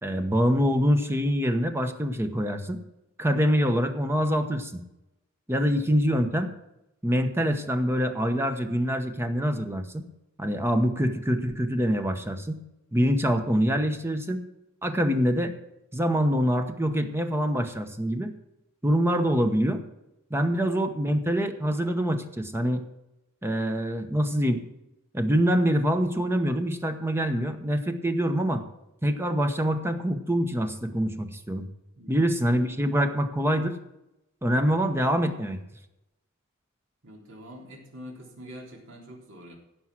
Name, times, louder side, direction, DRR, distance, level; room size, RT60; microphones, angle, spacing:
voice 1, 0.0-2.8 3.2-4.8 5.5-6.5 7.0-10.1 10.4-12.6 12.9-14.4 14.8-15.5 15.9-18.3 18.8-19.8 20.3-22.8 23.4-24.6 25.1-28.6 29.0-31.7 32.1-33.8 34.4-35.6, equal, 10° right, 7 dB, 1.0 m, -25 dB
voice 2, 32.0-32.3 37.0-39.6, equal, 65° right, 0 dB, 3.4 m, -45 dB
16.0 x 6.2 x 6.0 m, 0.89 s
head